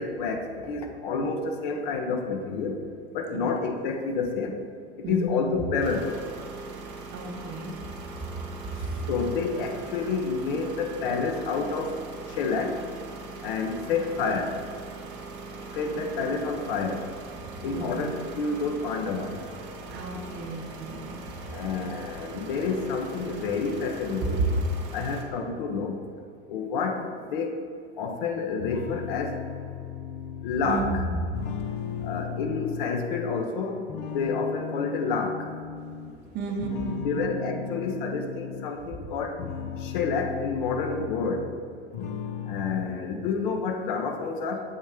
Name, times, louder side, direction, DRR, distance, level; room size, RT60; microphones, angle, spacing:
voice 1, 0.0-2.8 3.1-4.6 5.1-6.2 9.1-11.9 12.3-12.8 13.4-14.5 15.7-17.0 17.6-19.4 21.5-24.4 24.9-26.0 26.5-27.5 28.0-29.4 30.4-31.0 32.0-33.8 34.1-35.5 37.0-39.3 39.8-41.4 42.5-44.6, left 4 dB, 50° left, 4 dB, 0.8 m, -29 dB
voice 2, 5.0-5.6 7.1-7.7 17.6-18.1 19.9-21.2 24.4-24.5 30.6-31.2 36.3-37.2, right 2 dB, 30° right, 2 dB, 0.9 m, -32 dB
sound 1, 5.8-25.2, right 3 dB, 55° right, 1.0 m, -41 dB
sound 2, 28.6-33.5 33.9-36.2 36.6-38.7 39.2-41.6 41.9-42.9, left 7 dB, 25° left, 0.3 m, -36 dB
7.3 x 3.1 x 4.8 m, 2.2 s
figure-of-eight pair, 90°, 33 cm